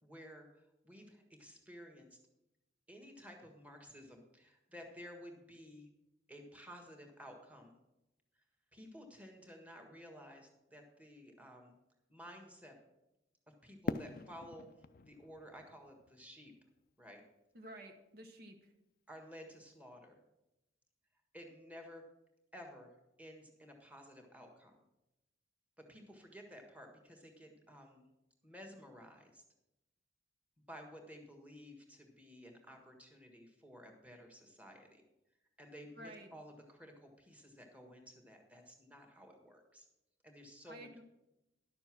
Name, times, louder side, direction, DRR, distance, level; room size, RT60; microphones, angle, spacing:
voice 1, 0.0-2.2 2.9-5.9 6.3-7.8 8.7-11.7 12.1-12.8 13.6-14.7 15.0-16.5 17.0-17.2 19.1-20.2 21.3-22.0 22.5-22.9 23.2-24.7 25.8-28.1 28.4-29.4 30.7-35.0 35.6-39.9 40.2-41.0, equal, 10° right, 3 dB, 1.6 m, -54 dB
Fireworks, 13.8-16.9, left 4 dB, 50° left, 0.4 m, -43 dB
voice 2, 17.5-18.7 36.0-36.3 40.7-41.0, right 1 dB, 55° right, 4 dB, 0.9 m, -52 dB
11.5 x 6.9 x 6.0 m, 0.93 s
head